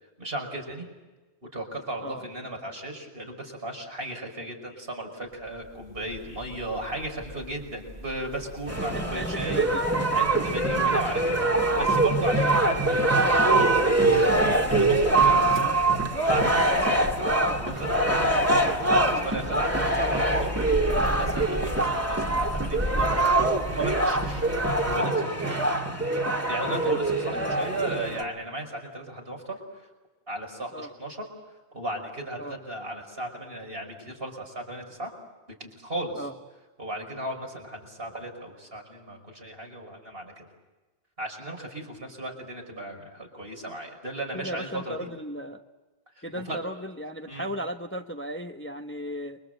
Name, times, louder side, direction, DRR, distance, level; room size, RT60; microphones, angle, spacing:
voice 1, 0.2-0.8 1.5-9.7 10.1-14.3 14.7-15.6 16.3-17.3 17.6-20.9 21.2-23.2 23.7-24.4 24.9-25.5 26.5-29.6 30.3-31.3 31.7-35.1 35.6-36.3 36.8-40.4 41.2-45.1 46.2-46.6 47.3-47.5, right 1 dB, 60° right, 1 dB, 6.0 m, -36 dB
sound 1, 5.3-25.0, equal, 30° right, 2.6 m, -38 dB
sound 2, 8.7-28.2, right 2 dB, 15° right, 2.3 m, -24 dB
voice 2, 8.9-9.8 12.3-12.6 15.6-15.7 26.8-27.0 27.3-27.6 30.7-30.9 32.4-32.5 36.1-36.3 44.3-45.6 46.2-49.4, equal, 10° left, 6 dB, 1.0 m, -36 dB
28.5 x 24.0 x 8.1 m, 1.2 s
omnidirectional pair, 1.1 m